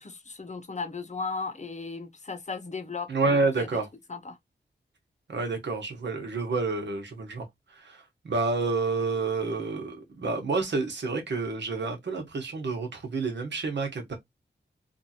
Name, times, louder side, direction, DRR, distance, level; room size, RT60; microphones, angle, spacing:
voice 1, 0.0-3.7 4.1-4.4, left 4 dB, 40° left, 0.8 m, -36 dB
voice 2, 3.1-3.9 5.3-14.1, right 3 dB, 75° right, 1.1 m, -29 dB
2.9 x 2.6 x 2.8 m
cardioid pair, 45°, 18 cm